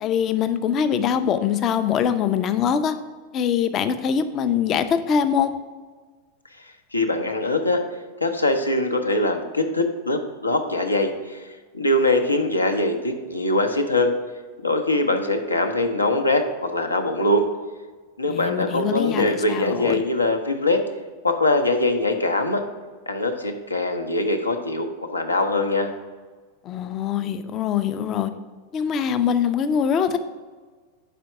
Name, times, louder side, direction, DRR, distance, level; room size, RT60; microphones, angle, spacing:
voice 1, 0.0-3.0 3.3-5.5 18.3-20.0 26.6-28.3 28.7-30.2, left 8 dB, 30° left, 11 dB, 0.4 m, -23 dB
voice 2, 6.6-7.8 8.2-14.1 14.6-17.5 18.2-20.8 21.2-22.6 23.1-25.9, left 2 dB, 80° left, 5 dB, 0.6 m, -22 dB
5.0 x 4.5 x 5.8 m, 1.4 s
figure-of-eight pair, 90°, 0 cm